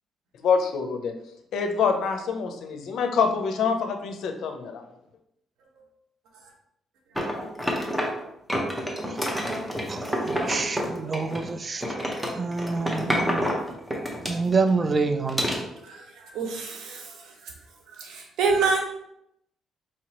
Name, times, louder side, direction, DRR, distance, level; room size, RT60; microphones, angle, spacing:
voice 1, 0.4-1.1 1.5-4.8, left 5 dB, 75° left, 6 dB, 0.5 m, -25 dB
sound 1, 7.2-8.2 8.5-11.5 11.8-14.7 15.3-15.6, equal, 5° right, 0.8 m, -28 dB
voice 2, 9.9-12.0 12.3-13.5 14.2-15.5, right 4 dB, 35° right, 8 dB, 0.4 m, -27 dB
voice 3, 15.8-17.5 18.0-18.8, right 4 dB, 90° right, 1 dB, 0.8 m, -27 dB
4.4 x 2.9 x 2.9 m, 0.79 s
cardioid pair, 90°, 0 cm